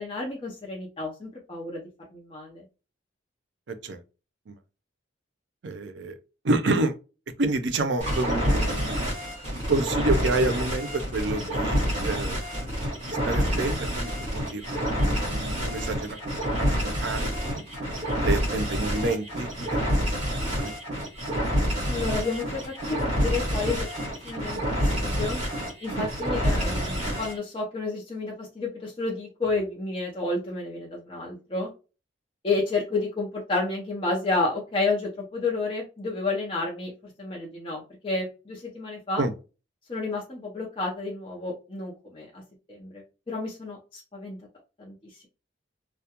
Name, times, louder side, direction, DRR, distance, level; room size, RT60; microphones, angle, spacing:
voice 1, 0.0-1.8 2.1-2.6 21.9-23.9 24.2-25.4 25.8-31.7 32.4-36.9 37.2-39.2 39.9-42.4 42.7-44.4 44.8-45.3, left 3 dB, 25° left, 0.5 m, -31 dB
voice 2, 5.6-6.2 6.4-6.9 7.4-8.9 9.7-12.4 13.1-16.2 16.6-17.6 18.2-19.5 19.9-20.3 20.6-20.7 26.0-26.1 39.2-39.3, right 2 dB, 65° right, 0.5 m, -28 dB
sound 1, 8.0-27.4, equal, 35° right, 1.2 m, -28 dB
2.3 x 2.1 x 2.8 m
head